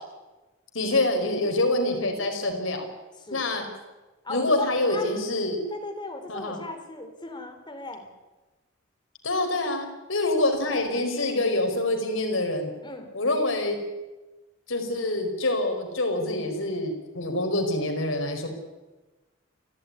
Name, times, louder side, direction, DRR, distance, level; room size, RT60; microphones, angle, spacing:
voice 1, 0.7-2.9 3.3-3.6 4.3-5.6 6.3-6.6 9.2-12.7 13.1-13.8 14.7-18.5, left 2 dB, 85° left, 4 dB, 5.0 m, -26 dB
voice 2, 3.2-3.6 4.2-5.2 5.7-8.1 12.8-13.1, left 2 dB, 25° left, 5 dB, 3.8 m, -37 dB
29.0 x 12.5 x 9.7 m, 1.1 s
head